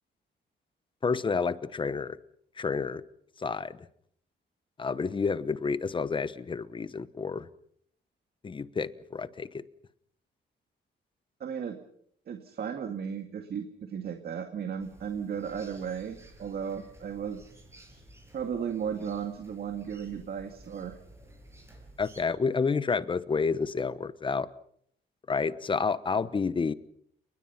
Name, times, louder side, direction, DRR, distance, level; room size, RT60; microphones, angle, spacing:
voice 1, 1.0-2.2 2.6-3.0 3.4-3.8 4.8-7.5 8.4-9.6 22.0-24.5 25.3-26.7, left 5 dB, 25° left, 15 dB, 1.1 m, -29 dB
voice 2, 11.4-11.8 12.3-17.5 18.3-21.0, right 7 dB, 55° right, 6 dB, 2.2 m, -35 dB
sound 1, 14.8-22.2, right 1 dB, 15° right, 6.4 m, -54 dB
30.0 x 20.5 x 5.8 m, 0.66 s
wide cardioid pair, 155°, 19 cm